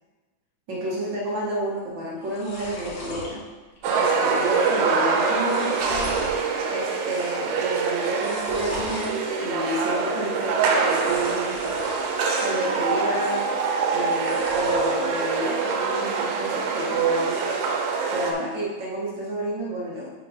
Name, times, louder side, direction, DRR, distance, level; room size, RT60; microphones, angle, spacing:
voice 1, 0.7-3.4 3.9-6.3 6.7-11.6 12.4-17.4 18.1-20.2, equal, 65° right, -6 dB, 1.1 m, -30 dB
sound 1, 1.8-1.9 2.1-3.3 3.8-4.2 4.4-4.5 5.1-6.4 6.8-7.3 8.0-9.1 10.9-12.2 12.7-13.3 14.0-15.0, left 1 dB, 75° left, 2.8 m, -38 dB
sound 2, 3.8-18.3, right 5 dB, 80° right, 2.1 m, -25 dB
5.8 x 3.8 x 4.8 m, 1.3 s
omnidirectional pair, 3.7 m